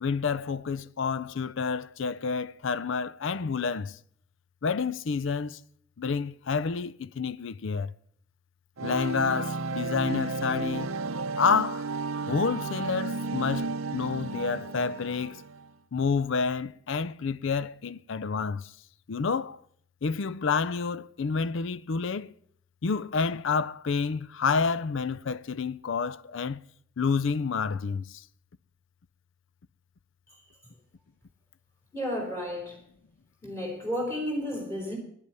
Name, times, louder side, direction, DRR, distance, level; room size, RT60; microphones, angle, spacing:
voice 1, 0.0-4.0 4.6-5.6 6.0-7.9 8.8-10.9 11.4-11.9 12.3-15.4 15.9-18.7 19.1-19.6 20.0-22.3 22.8-26.6 27.0-28.2, left 5 dB, 60° left, 0.5 m, -29 dB
sound 1, 8.8-15.7, right 3 dB, 70° right, 0.6 m, -33 dB
voice 2, 31.9-32.8 33.4-35.0, equal, 10° left, 4.3 m, -32 dB
10.5 x 8.5 x 9.6 m
head